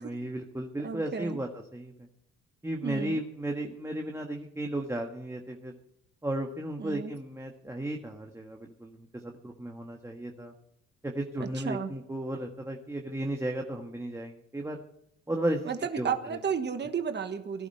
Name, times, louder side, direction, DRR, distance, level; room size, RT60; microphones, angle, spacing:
voice 1, 0.0-2.1 2.6-5.7 6.2-10.5 11.0-14.8 15.3-16.1, right 1 dB, 10° right, 2 dB, 1.6 m, -34 dB
voice 2, 0.8-1.4 2.8-3.2 6.8-7.1 11.4-11.9 15.6-17.7, right 6 dB, 35° right, 7 dB, 1.3 m, -33 dB
18.0 x 11.5 x 4.6 m, 0.75 s
cardioid pair, 90°, 30 cm